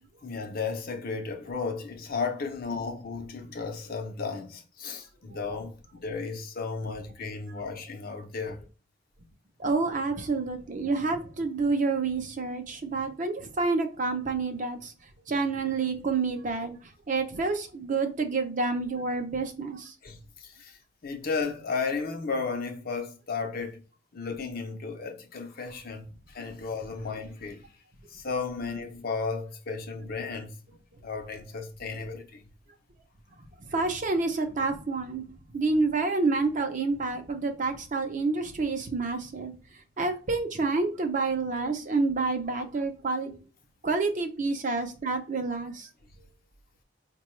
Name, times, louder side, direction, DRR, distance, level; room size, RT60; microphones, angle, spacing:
voice 1, 0.2-8.7 20.0-23.8 24.1-27.6 28.1-32.5 46.0-46.1, left 4 dB, 55° left, 0.7 m, -34 dB
voice 2, 9.6-14.9 15.3-16.8 17.1-19.9 33.7-35.2 35.5-39.5 40.0-43.4 43.8-45.9, right 3 dB, 45° right, 0.6 m, -28 dB
4.5 x 2.3 x 3.0 m
head